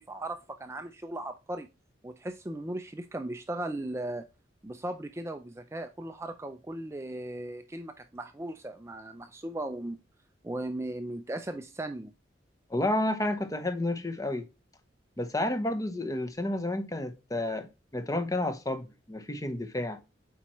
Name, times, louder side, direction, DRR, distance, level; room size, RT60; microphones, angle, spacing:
voice 1, 0.0-1.7 2.0-4.3 4.6-10.0 10.4-12.1, right 1 dB, 15° right, 0.4 m, -37 dB
voice 2, 12.7-14.5 15.2-17.7 17.9-20.0, left 1 dB, 20° left, 0.7 m, -30 dB
8.3 x 4.5 x 3.0 m
head